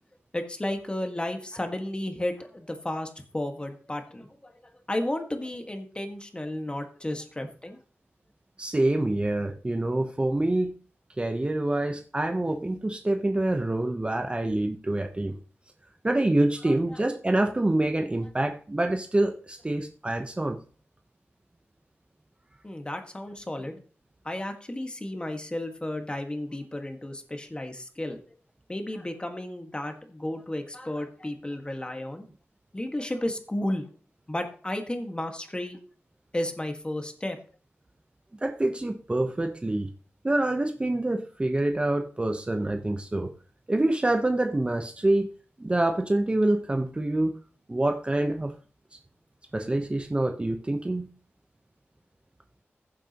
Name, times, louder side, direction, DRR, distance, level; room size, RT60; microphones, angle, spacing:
voice 1, 0.3-4.5 4.9-7.8 16.6-17.0 22.6-23.8 24.2-28.2 28.7-32.2 32.7-33.9 34.3-35.8 36.3-37.4, left 1 dB, 20° left, 5 dB, 1.6 m, -33 dB
voice 2, 8.6-10.7 11.2-15.4 16.0-20.6 38.4-39.9 40.2-43.3 43.7-45.3 45.6-47.3 47.7-48.5 49.5-51.1, right 1 dB, 20° right, 5 dB, 0.9 m, -26 dB
15.0 x 7.4 x 3.0 m, 0.40 s
wide cardioid pair, 75°, 5 cm